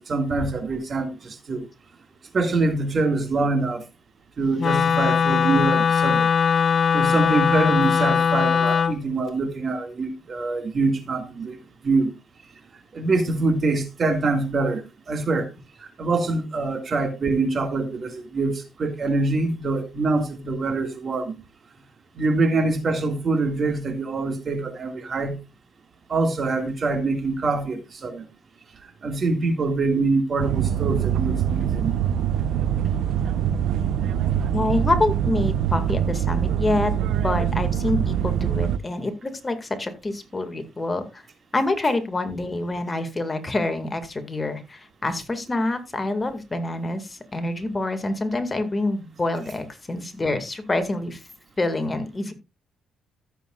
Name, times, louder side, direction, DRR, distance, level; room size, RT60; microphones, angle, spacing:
voice 1, 0.1-1.7 2.3-3.8 4.4-6.3 6.9-11.6 11.8-12.1 12.9-15.5 15.8-21.4 22.2-25.4 26.1-28.3 29.0-31.9, right 3 dB, 45° right, 2.1 m, -24 dB
Wind instrument woodwind instrument, 4.6-9.0, left 6 dB, 45° left, 0.6 m, -20 dB
sound 1, 30.4-38.8, right 9 dB, 80° right, 0.7 m, -24 dB
voice 2, 34.5-41.2 41.5-51.2 51.6-52.3, left 2 dB, 25° left, 2.1 m, -26 dB
15.0 x 8.0 x 2.4 m
cardioid pair, 90°, 0 cm